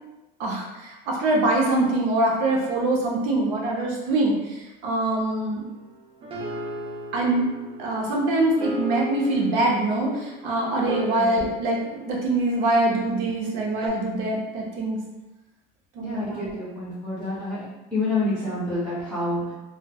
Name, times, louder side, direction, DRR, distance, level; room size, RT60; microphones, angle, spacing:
voice 1, 0.4-5.6 7.1-7.5 7.8-15.0 16.0-16.5, right 2 dB, 75° right, -2 dB, 0.7 m, -24 dB
sound 1, 5.6-13.1 13.8-13.9, equal, 30° right, 0.4 m, -38 dB
voice 2, 16.0-17.6 17.9-19.5, left 2 dB, 5° left, -12 dB, 0.7 m, -28 dB
2.1 x 2.0 x 3.3 m, 1.0 s
cardioid pair, 150°, 20 cm